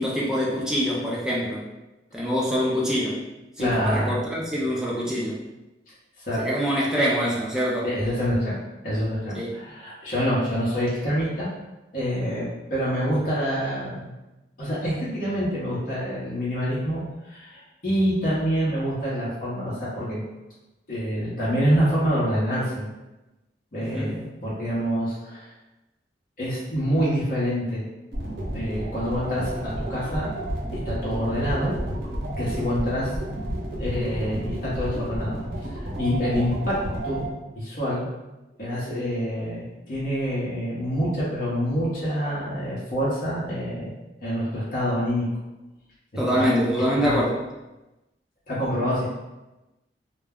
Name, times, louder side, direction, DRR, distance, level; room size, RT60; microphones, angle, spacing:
voice 1, 0.0-1.6 2.1-3.2 3.6-5.4 6.4-7.9 9.3-9.6 23.8-24.2 46.2-47.4, equal, 5° right, -5 dB, 0.4 m, -25 dB
voice 2, 3.6-4.2 6.2-6.4 7.8-8.6 8.8-11.5 11.9-14.1 14.6-20.2 20.9-22.9 23.7-25.5 26.4-27.8 28.5-30.3 30.7-31.7 32.4-33.1 33.8-35.4 35.6-36.8 37.0-37.2 37.5-38.1 38.6-43.9 44.2-45.3 46.3-46.5 47.0-47.2 48.5-49.1, equal, 50° left, -8 dB, 0.7 m, -26 dB
sound 1, 28.1-37.3, right 1 dB, 70° right, 0.8 m, -31 dB
2.2 x 2.1 x 3.4 m, 1.0 s
head